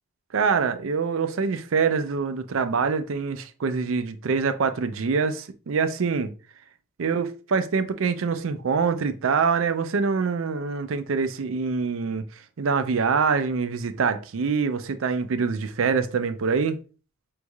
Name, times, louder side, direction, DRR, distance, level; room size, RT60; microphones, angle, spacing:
voice 1, 0.3-6.3 7.0-12.2 12.6-16.8, right 5 dB, 70° right, 0.5 m, -25 dB
5.2 x 3.2 x 2.3 m
head